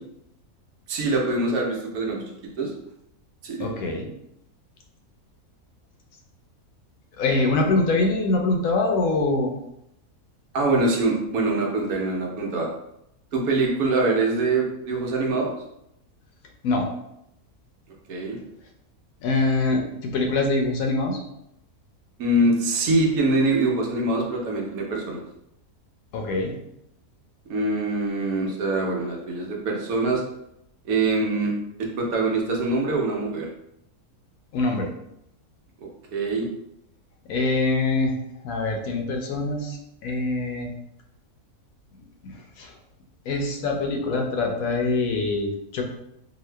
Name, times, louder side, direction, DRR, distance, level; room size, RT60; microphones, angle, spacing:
voice 1, 0.9-2.2 2.6-2.7 3.4-3.7 10.5-12.7 13.3-15.5 18.1-18.4 22.2-25.2 27.5-30.2 30.8-31.5 31.8-33.5 36.1-36.5, right 2 dB, 75° right, 0 dB, 1.2 m, -24 dB
voice 2, 3.6-4.1 7.2-9.5 16.6-16.9 19.2-21.2 26.1-26.6 34.5-34.9 37.3-38.1 38.4-40.7 42.2-42.7 43.3-45.8, left 3 dB, 75° left, 3 dB, 1.0 m, -24 dB
2.8 x 2.6 x 3.2 m, 0.81 s
omnidirectional pair, 1.6 m